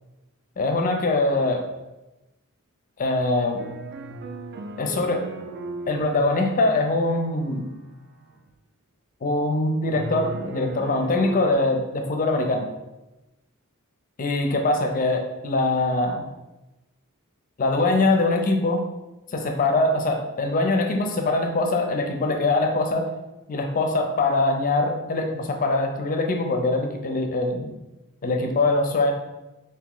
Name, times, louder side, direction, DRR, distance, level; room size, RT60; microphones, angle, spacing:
voice 1, 0.6-1.6 3.0-3.6 4.8-5.3 5.9-7.7 9.2-12.7 14.2-16.3 17.6-18.8 19.3-23.1 23.5-27.7 28.2-29.1, left 2 dB, 40° left, 3 dB, 0.4 m, -23 dB
sound 1, 3.6-8.5 9.9-11.5, right 3 dB, 50° right, 0.3 m, -36 dB
3.0 x 2.7 x 3.7 m, 1.0 s
head